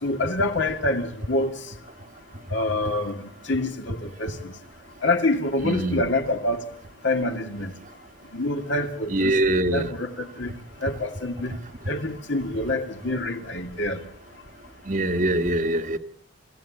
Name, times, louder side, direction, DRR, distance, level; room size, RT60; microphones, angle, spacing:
voice 1, 0.0-1.7 2.5-4.6 5.0-6.7 7.0-7.7 8.3-9.4 9.7-10.5 10.8-11.6 11.9-14.0, left 2 dB, 60° left, 2.4 m, -26 dB
voice 2, 5.6-6.0 9.1-9.9 14.9-16.0, right 1 dB, 40° right, 1.5 m, -23 dB
28.0 x 16.0 x 8.6 m
head